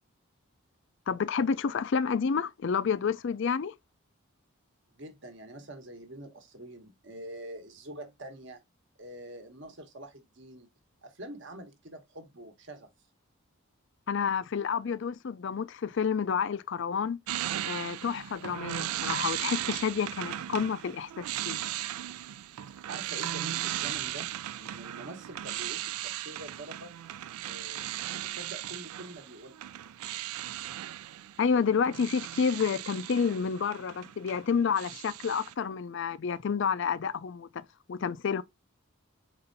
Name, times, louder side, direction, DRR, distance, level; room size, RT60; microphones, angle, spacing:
voice 1, 1.1-3.7 14.1-17.2 17.6-21.6 31.4-38.4, left 6 dB, 55° left, 0.4 m, -29 dB
voice 2, 4.9-8.6 9.0-10.7 11.0-12.9 22.9-24.3 24.6-26.9 27.4-29.6, right 1 dB, 55° right, 1.1 m, -45 dB
sound 1, 17.3-34.4 34.7-35.5, right 12 dB, 90° right, 0.3 m, -37 dB
4.4 x 4.1 x 2.6 m
head